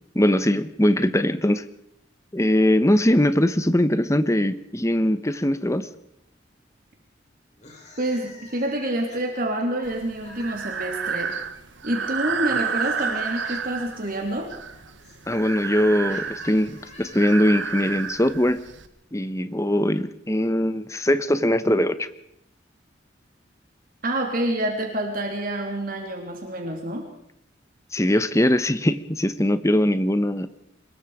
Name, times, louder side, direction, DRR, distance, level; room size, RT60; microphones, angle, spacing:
voice 1, 0.1-1.6 2.3-5.9 15.3-18.6 19.1-22.1 27.9-30.5, left 1 dB, 15° left, 12 dB, 1.0 m, -21 dB
sound 1, 7.5-10.8 11.8-17.7, left 3 dB, 40° left, 5.8 m, -49 dB
voice 2, 8.0-11.4 11.8-14.5 24.0-27.0, right 1 dB, 50° right, 2 dB, 3.2 m, -27 dB
Breathing, 9.8-18.9, right 6 dB, 90° right, 1.6 m, -31 dB
25.0 x 21.5 x 5.0 m, 0.76 s
head